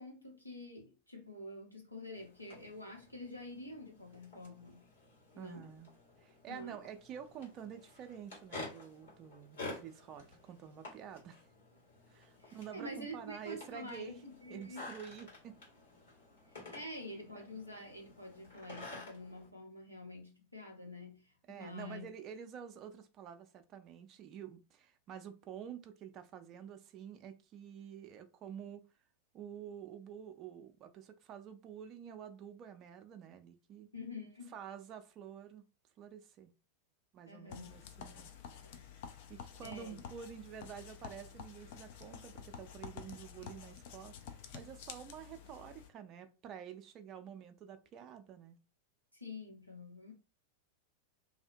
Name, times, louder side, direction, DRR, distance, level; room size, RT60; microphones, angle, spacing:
voice 1, 0.0-4.8 5.3-5.7 6.5-6.8 12.4-14.8 16.5-22.1 33.9-34.5 37.3-37.7 38.1-38.2 38.5-38.9 39.6-40.0 49.1-50.1, left 1 dB, 90° left, 0.9 m, -48 dB
sound 1, 2.1-19.5, left 2 dB, 65° left, 1.5 m, -52 dB
voice 2, 5.4-5.9 6.2-11.4 12.1-14.2 14.5-15.6 16.6-16.7 21.5-28.8 29.3-33.9 34.5-35.6 36.0-36.5 37.1-38.3 39.0-48.6, right 8 dB, 35° right, 0.4 m, -49 dB
sound 2, 37.5-45.9, left 8 dB, 50° left, 0.4 m, -50 dB
2.6 x 2.0 x 2.6 m
figure-of-eight pair, 90°, 0 cm